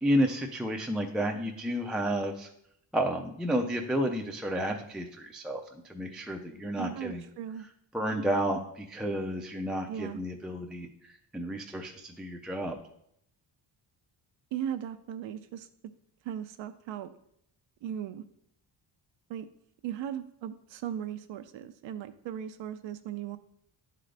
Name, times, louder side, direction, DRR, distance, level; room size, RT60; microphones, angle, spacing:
voice 1, 0.0-2.5 2.9-5.6 5.9-7.2 7.9-12.8, equal, ahead, 1 dB, 0.3 m, -31 dB
voice 2, 6.8-7.7 9.9-10.2 14.5-15.7 16.2-17.1 17.8-18.2 19.3-19.5 19.8-23.4, right 10 dB, 80° right, 9 dB, 0.5 m, -37 dB
11.0 x 3.8 x 3.3 m, 0.71 s
wide cardioid pair, 165°, 44 cm